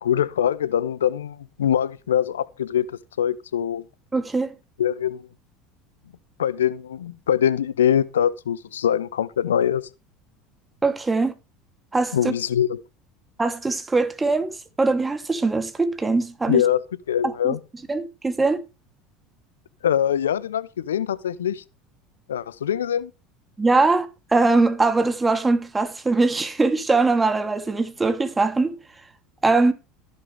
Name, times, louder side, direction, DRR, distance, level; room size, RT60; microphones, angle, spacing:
voice 1, 0.0-2.9 3.2-3.8 4.8-5.3 6.4-9.8 12.1-12.8 16.5-17.6 19.8-21.6 22.3-23.1, left 9 dB, 75° left, 0.6 m, -23 dB
voice 2, 4.1-4.5 10.8-11.3 11.9-12.3 13.4-14.5 14.8-16.6 17.4-17.5 17.9-18.6 23.6-28.8 29.4-29.7, right 3 dB, 15° right, 2.9 m, -21 dB
14.0 x 12.0 x 3.5 m
figure-of-eight pair, 70°, 0 cm